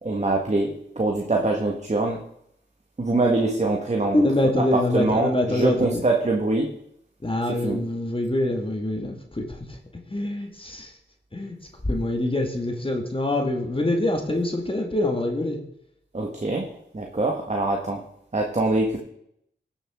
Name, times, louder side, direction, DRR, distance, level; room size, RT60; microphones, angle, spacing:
voice 1, 0.0-2.2 3.0-4.2 4.6-6.7 7.5-7.8 16.1-18.0 18.3-19.0, right 2 dB, 35° right, 1 dB, 1.7 m, -24 dB
voice 2, 4.1-6.0 7.2-9.6 10.1-10.9 11.3-11.6 11.8-15.6, left 1 dB, 25° left, 2 dB, 2.0 m, -25 dB
16.5 x 7.3 x 3.7 m, 0.74 s
cardioid pair, 45°, 19 cm